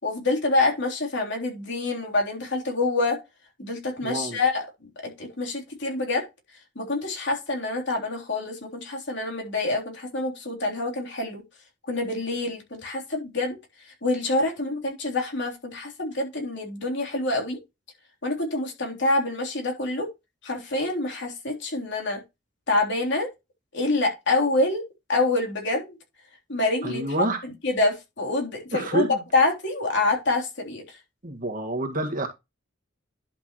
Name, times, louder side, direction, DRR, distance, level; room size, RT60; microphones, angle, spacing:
voice 1, 0.0-3.2 3.6-4.6 5.0-6.3 6.7-11.4 11.9-13.6 14.0-17.6 18.2-20.1 20.4-22.2 22.7-23.3 23.7-24.8 25.1-26.0 26.5-27.0 27.4-31.0, left 2 dB, 65° left, 3.5 m, -26 dB
voice 2, 4.0-4.4 26.8-27.4 28.7-29.2 31.2-32.3, right 2 dB, 45° right, 1.8 m, -28 dB
11.0 x 5.9 x 3.1 m
head